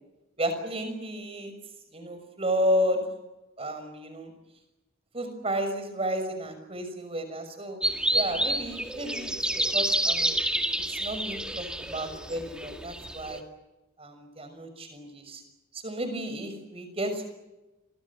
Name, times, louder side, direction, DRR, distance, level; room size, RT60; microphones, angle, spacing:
voice 1, 0.4-1.5 1.9-3.0 3.6-4.3 5.1-9.3 9.7-10.3 10.9-11.6 11.9-13.4 14.0-15.4 15.8-17.3, equal, 25° right, 9 dB, 6.1 m, -32 dB
sound 1, 7.8-13.4, right 1 dB, 5° right, 2.0 m, -29 dB
29.5 x 25.0 x 7.4 m, 1.0 s
head